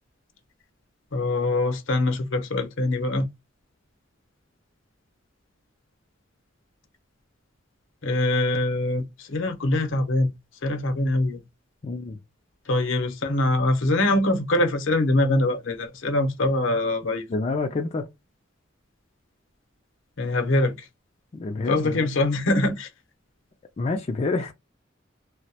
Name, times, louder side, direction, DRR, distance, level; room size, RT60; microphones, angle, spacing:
voice 1, 1.1-3.3 8.0-10.3 10.6-11.4 12.7-17.2 20.2-20.7 21.7-22.9, left 2 dB, 75° left, 0.7 m, -23 dB
voice 2, 11.8-12.2 17.3-18.1 21.3-22.1 23.8-24.5, left 3 dB, 35° left, 0.4 m, -28 dB
2.3 x 2.0 x 2.7 m
head